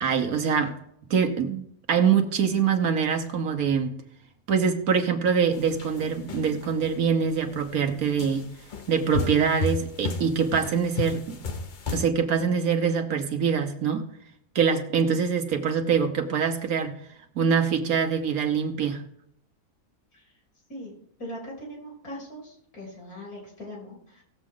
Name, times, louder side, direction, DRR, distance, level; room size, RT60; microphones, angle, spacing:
voice 1, 0.0-0.7 1.1-3.9 4.5-8.5 8.9-11.4 11.9-14.1 14.5-16.9 17.4-19.0, right 6 dB, 70° right, 4 dB, 1.5 m, -24 dB
sound 1, 5.5-6.9 7.5-7.7 8.2-12.0, left 3 dB, 40° left, 0.8 m, -33 dB
voice 2, 21.2-24.2, equal, 75° left, -2 dB, 4.2 m, -40 dB
17.5 x 7.3 x 3.8 m, 0.73 s
omnidirectional pair, 1.6 m